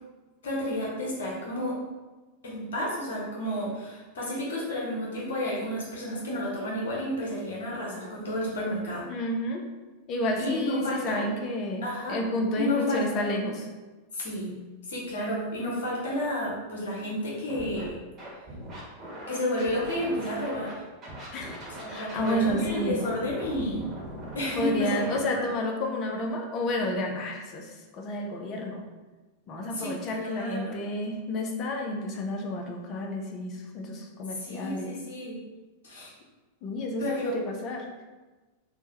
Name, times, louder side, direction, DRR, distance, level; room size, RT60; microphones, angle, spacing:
voice 1, 0.4-1.8 2.4-9.1 10.4-11.3 11.8-12.2 12.6-13.3 14.1-14.6 14.9-17.9 19.3-20.7 21.7-23.9 24.3-25.0 25.4-25.5 29.7-30.8 34.4-35.4 35.8-36.1 37.0-37.4, left 1 dB, 65° left, -4 dB, 0.9 m, -31 dB
voice 2, 9.1-9.6 10.1-13.7 21.3-21.6 21.9-23.0 24.6-27.7 28.0-28.8 29.5-34.9 36.6-38.0, left 1 dB, 35° left, 2 dB, 0.5 m, -30 dB
Scratching (performance technique), 17.5-17.8 18.2-20.7 21.0-25.2, right 1 dB, 30° right, 1.0 m, -40 dB
3.4 x 2.1 x 2.8 m, 1.2 s
figure-of-eight pair, 90°, 0 cm